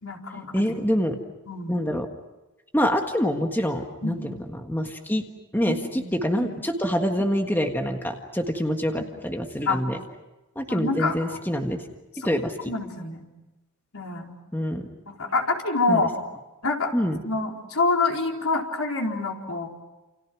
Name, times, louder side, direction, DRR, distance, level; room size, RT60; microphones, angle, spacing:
voice 1, 0.0-0.5 1.5-1.8 4.0-4.3 5.7-6.5 9.7-9.8 10.7-11.4 12.7-13.2 13.9-14.3 15.1-16.1 16.6-16.9 17.2-19.7, left 3 dB, 75° left, 1 dB, 4.4 m, -26 dB
voice 2, 0.5-1.2 1.7-2.1 2.7-5.2 5.5-10.0 10.5-11.8 12.2-12.7 14.5-14.9 15.9-16.1 16.9-17.2, equal, 10° left, 4 dB, 1.6 m, -26 dB
30.0 x 29.0 x 6.3 m, 1.1 s
head